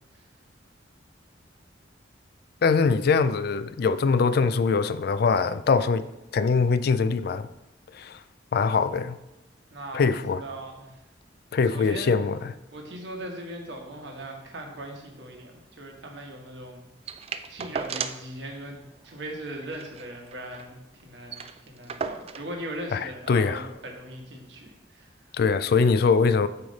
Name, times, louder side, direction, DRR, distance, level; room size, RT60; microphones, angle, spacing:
voice 1, 2.6-6.1 6.3-7.5 7.9-8.2 8.5-9.2 9.9-10.4 11.5-12.5 22.9-23.7 25.3-26.5, left 5 dB, 55° left, 0.3 m, -23 dB
voice 2, 9.7-10.0 10.4-11.0 11.7-12.1 12.7-16.9 17.5-20.8 21.0-25.1 25.7-25.8, right 1 dB, 65° right, 1.3 m, -39 dB
sound 1, 17.1-18.3 18.7-18.8 19.0-19.2 19.6-20.7 21.0-21.1 21.3-22.5 23.4-23.5, right 6 dB, 35° right, 0.3 m, -35 dB
8.7 x 3.2 x 5.1 m
head